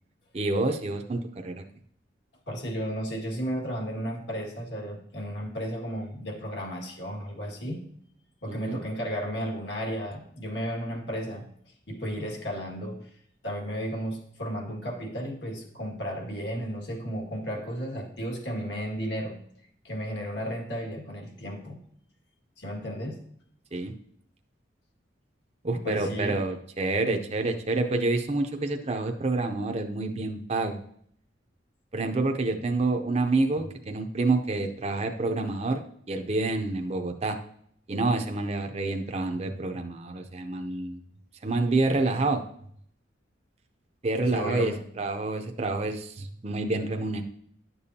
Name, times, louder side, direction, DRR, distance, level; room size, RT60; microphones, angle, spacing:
voice 1, 0.3-1.6 8.5-8.8 23.7-23.9 25.6-30.8 31.9-35.8 36.1-37.4 37.9-41.0 41.4-42.4 44.0-47.2, right 2 dB, 35° right, 5 dB, 0.6 m, -28 dB
voice 2, 2.5-7.9 8.4-11.5 11.9-13.1 13.4-19.4 19.8-21.8 22.6-23.2 25.7-26.4 44.3-44.8, equal, 65° left, 0 dB, 1.9 m, -33 dB
10.5 x 6.9 x 2.8 m, 0.65 s
head